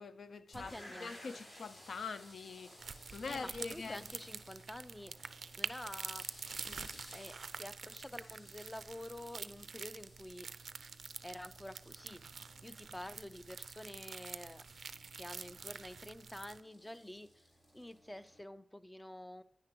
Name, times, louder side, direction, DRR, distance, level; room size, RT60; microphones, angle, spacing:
voice 1, 0.0-0.8 1.0-4.0, left 4 dB, 90° left, 0.4 m, -44 dB
sound 1, 0.5-18.4, left 1 dB, 65° left, 3.6 m, -58 dB
voice 2, 0.5-1.1 3.3-6.4 6.6-10.5 11.2-12.2 12.6-19.4, left 1 dB, 10° left, 0.4 m, -49 dB
sound 2, 2.8-16.6, right 5 dB, 75° right, 0.3 m, -47 dB
9.9 x 9.5 x 3.0 m
wide cardioid pair, 120°, 0 cm